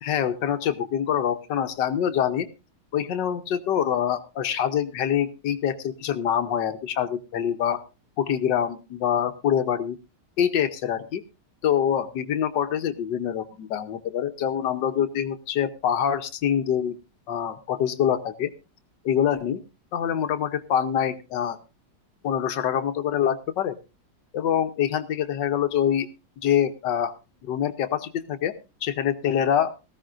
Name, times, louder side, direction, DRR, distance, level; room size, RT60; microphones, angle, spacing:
voice 1, 0.0-2.5 2.9-7.8 8.2-10.0 10.4-11.2 11.6-17.0 17.3-18.5 19.0-19.6 19.9-21.6 22.2-23.8 24.3-26.1 26.4-27.1 27.4-28.5 28.8-29.7, left 9 dB, 85° left, 9 dB, 1.5 m, -25 dB
18.5 x 14.5 x 2.5 m, 0.30 s
omnidirectional pair, 1.9 m